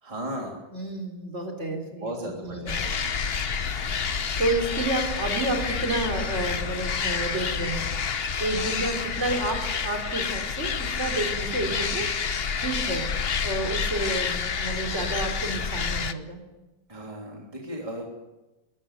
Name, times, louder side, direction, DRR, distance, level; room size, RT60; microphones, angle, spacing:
voice 1, 0.0-0.6 2.0-3.1 16.9-18.1, right 1 dB, 20° right, -1 dB, 3.2 m, -36 dB
voice 2, 0.7-2.8 4.4-7.8 8.4-13.1 13.4-16.4, right 2 dB, 40° right, 3 dB, 4.1 m, -30 dB
sound 1, 2.7-16.1, left 6 dB, 45° left, 1.0 m, -29 dB
22.0 x 14.0 x 9.1 m, 1.0 s
omnidirectional pair, 1.8 m